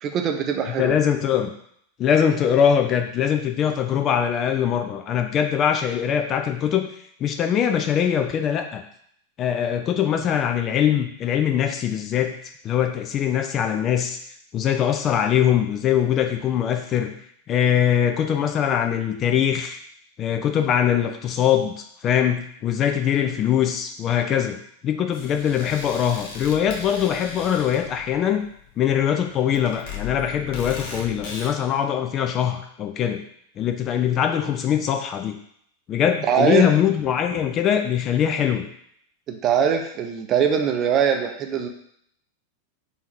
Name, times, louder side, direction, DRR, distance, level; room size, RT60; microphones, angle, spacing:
voice 1, 0.0-1.0 36.3-36.7 39.3-41.7, right 7 dB, 30° right, 4 dB, 0.6 m, -22 dB
voice 2, 0.8-1.5 2.0-6.9 7.2-8.8 9.4-12.3 12.6-14.2 14.5-17.1 17.5-19.8 20.2-21.7 22.0-28.5 28.8-33.2 33.6-35.4 35.9-38.7, left 9 dB, 30° left, 5 dB, 0.4 m, -22 dB
sound 1, 25.1-31.5, left 6 dB, 45° left, 0.9 m, -38 dB
3.7 x 2.8 x 4.4 m, 0.68 s
figure-of-eight pair, 90°, 0 cm